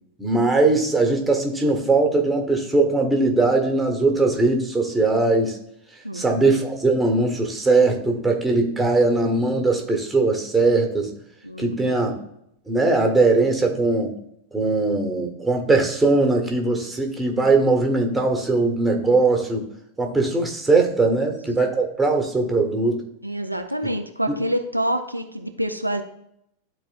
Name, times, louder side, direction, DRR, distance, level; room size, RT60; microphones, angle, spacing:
voice 1, 0.2-5.6 6.1-11.1 11.6-12.2 12.7-14.1 14.5-19.6 20.0-23.0, right 3 dB, 10° right, 2 dB, 1.4 m, -20 dB
voice 2, 6.0-6.4 8.5-8.6 11.4-11.9 21.2-21.3 23.2-26.0, right 1 dB, 90° right, 5 dB, 0.5 m, -27 dB
12.0 x 4.3 x 2.6 m, 0.76 s
figure-of-eight pair, 90°, 0 cm